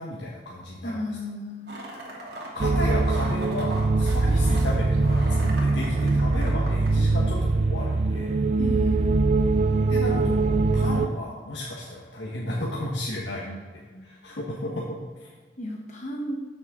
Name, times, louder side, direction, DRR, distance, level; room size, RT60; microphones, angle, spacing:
voice 1, 0.0-1.2 2.5-8.4 9.9-15.3, left 1 dB, 75° left, -4 dB, 1.4 m, -34 dB
voice 2, 0.8-1.7 8.6-9.1 13.4-13.6 13.9-14.1 15.6-16.4, left 1 dB, 45° left, 0 dB, 1.2 m, -34 dB
sound 1, 1.7-6.9, right 1 dB, 65° right, 2.5 m, -39 dB
sound 2, 2.6-11.1, right 3 dB, 40° right, 0.3 m, -22 dB
13.0 x 6.8 x 3.7 m, 1.5 s
head